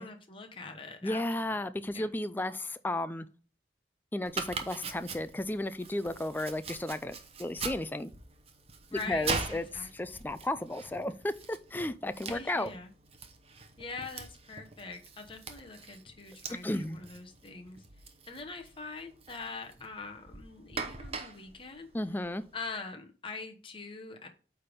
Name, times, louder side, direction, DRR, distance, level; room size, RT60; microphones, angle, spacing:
voice 1, 0.0-1.7 1.9-2.1 8.9-10.2 12.3-12.9 13.8-17.8 18.3-21.9 22.5-24.3, left 4 dB, 30° left, 4 dB, 1.1 m, -43 dB
voice 2, 1.0-3.3 4.1-8.1 8.9-12.7 16.6-17.0 21.9-22.4, left 1 dB, 10° left, 12 dB, 0.3 m, -34 dB
Domestic sounds home sounds, 4.2-22.7, right 4 dB, 35° right, 0.8 m, -42 dB
8.6 x 3.5 x 5.2 m, 0.39 s
head